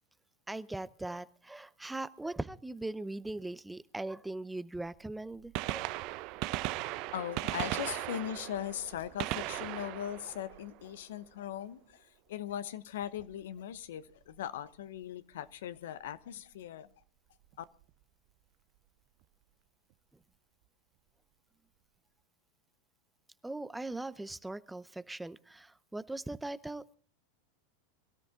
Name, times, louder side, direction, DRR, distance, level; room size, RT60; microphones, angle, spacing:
voice 1, 0.5-5.9 23.4-27.0, right 2 dB, 5° right, 0.7 m, -40 dB
Gunshot gunfire, 5.4-11.3 13.2-13.3 14.4-14.5 16.0-16.1 17.5-17.6 17.8-17.9, right 18 dB, 55° right, 0.6 m, -37 dB
voice 2, 7.1-16.9 17.6-17.7, left 10 dB, 75° left, 0.8 m, -39 dB
22.5 x 13.0 x 3.7 m
hypercardioid pair, 100°, 0 cm